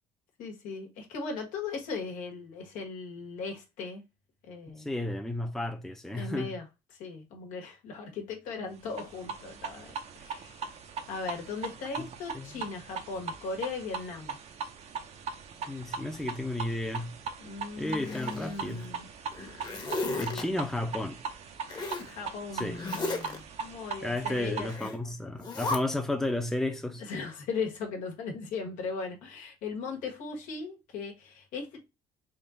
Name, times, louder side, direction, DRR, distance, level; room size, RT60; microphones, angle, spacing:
voice 1, 0.4-4.0 4.5-4.9 6.1-6.7 7.0-10.7 11.1-14.4 17.4-19.1 20.3-20.4 21.8-24.7 27.0-31.9, left 4 dB, 80° left, 1.3 m, -38 dB
voice 2, 4.8-6.5 12.0-12.1 12.3-12.6 15.7-17.1 17.8-18.9 20.2-21.2 22.5-22.8 24.0-27.0, left 1 dB, 5° left, 0.7 m, -32 dB
sound 1, 8.9-24.8, right 5 dB, 55° right, 0.7 m, -40 dB
Zipper (clothing), 17.9-18.9 19.3-20.4 21.7-22.1 22.7-23.4 24.7-25.0 25.4-25.8, left 2 dB, 30° left, 1.1 m, -35 dB
3.7 x 2.5 x 3.9 m
supercardioid pair, 90°, 13 cm